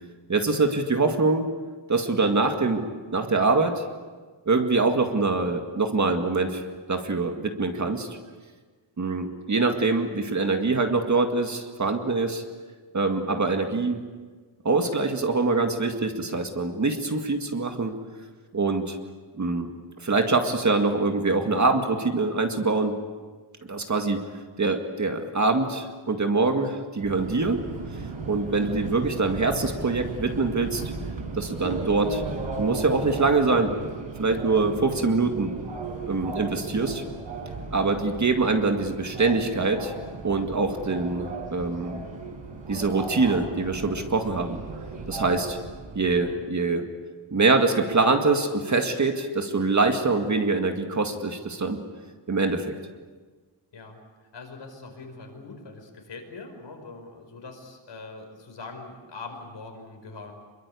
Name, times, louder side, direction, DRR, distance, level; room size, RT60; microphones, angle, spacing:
voice 1, 0.3-1.5 1.9-2.8 3.1-3.9 4.5-6.6 6.9-8.1 9.0-12.4 12.9-14.0 14.6-18.0 18.5-19.0 19.4-19.7 20.0-23.0 23.7-24.2 24.6-27.6 28.3-30.8 31.4-32.2 32.6-33.7 34.2-35.5 36.1-37.0 37.7-39.9 40.2-42.0 42.7-44.6 45.1-45.6 45.9-46.9 47.3-51.8 52.3-52.7, right 3 dB, 35° right, 5 dB, 2.0 m, -24 dB
Subway metro underground, 27.0-46.2, right 3 dB, 65° right, 4.6 m, -36 dB
voice 2, 54.3-60.3, left 3 dB, 60° left, 3 dB, 5.2 m, -42 dB
27.0 x 22.5 x 8.5 m, 1.4 s
wide cardioid pair, 175°, 48 cm